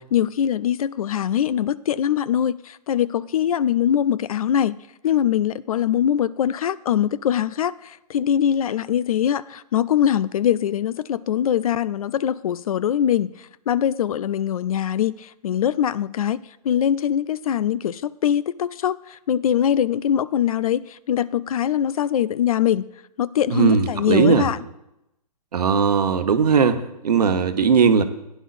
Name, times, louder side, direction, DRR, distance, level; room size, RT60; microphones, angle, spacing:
voice 1, 0.1-4.8 5.0-13.3 13.7-22.9 23.2-24.6, left 10 dB, 60° left, 0.5 m, -22 dB
voice 2, 23.5-24.5 25.5-28.0, right 6 dB, 75° right, 1.1 m, -18 dB
16.0 x 10.0 x 2.6 m
hypercardioid pair, 140°, 21 cm